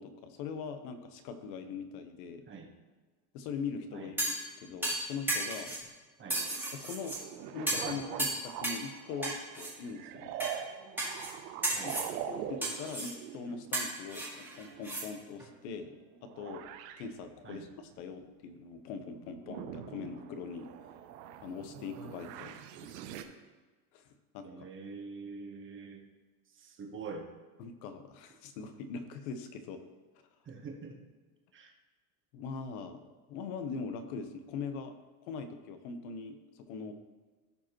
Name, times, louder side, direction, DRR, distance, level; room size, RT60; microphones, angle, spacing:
voice 1, 0.0-2.4 3.3-5.7 6.7-7.2 7.5-10.3 11.8-12.0 12.3-15.9 16.2-16.6 17.0-20.7 21.4-22.5 22.8-23.2 23.9-24.0 24.3-24.7 27.6-29.8 32.3-33.0 33.3-35.0 35.2-36.9, left 5 dB, 65° left, 8 dB, 1.1 m, -41 dB
sound 1, 4.2-4.5 4.8-5.8 6.3-7.2 7.7-7.9 8.2-8.8 9.2-9.7 10.4-10.6 11.0-11.3 11.6-12.1 12.6-13.1 13.7-15.1 15.4-15.5, right 2 dB, 5° right, 1.9 m, -34 dB
sound 2, 6.2-15.6 15.9-17.1 17.6-18.7 19.1-23.2, right 10 dB, 85° right, 0.9 m, -44 dB
voice 2, 24.4-26.0 26.5-27.3 30.4-31.0 31.5-31.7 36.8-36.9, right 4 dB, 25° right, 2 dB, 1.3 m, -45 dB
14.5 x 5.0 x 3.1 m, 1.3 s
supercardioid pair, 135°, 49 cm